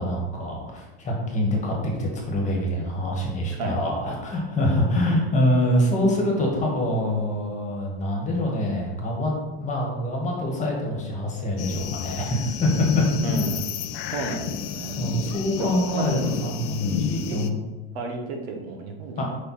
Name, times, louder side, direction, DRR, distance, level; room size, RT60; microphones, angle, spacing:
voice 1, 0.0-9.3 9.6-13.0 15.0-17.6 19.2-19.3, left 1 dB, 25° left, -1 dB, 1.5 m, -25 dB
voice 2, 3.5-4.2 13.2-13.7 14.1-15.2 15.6-16.2 17.2-17.4 17.9-19.2, right 3 dB, 80° right, 3 dB, 1.3 m, -32 dB
sound 1, 11.6-17.5, left 8 dB, 45° left, 0.5 m, -30 dB
5.3 x 4.5 x 4.2 m, 1.2 s
supercardioid pair, 150°, 31 cm